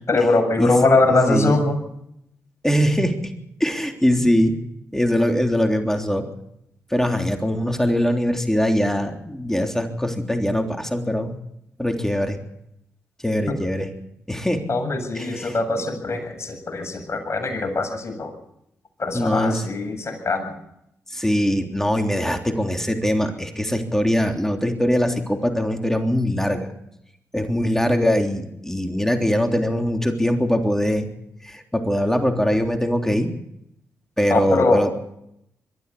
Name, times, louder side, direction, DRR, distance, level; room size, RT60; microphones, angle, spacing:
voice 1, 0.1-1.8 13.5-13.6 14.7-18.3 19.0-20.5 34.3-34.9, left 2 dB, 45° left, 4 dB, 7.8 m, -22 dB
voice 2, 1.0-1.6 2.6-3.3 3.6-4.6 4.9-6.3 6.9-11.4 11.8-12.4 13.2-13.9 14.3-14.7 15.1-15.5 19.1-19.6 21.1-26.7 27.3-31.1 31.4-33.3 34.2-34.9, equal, 5° left, 4 dB, 3.3 m, -22 dB
22.5 x 14.0 x 8.5 m, 0.79 s
hypercardioid pair, 40°, 7 cm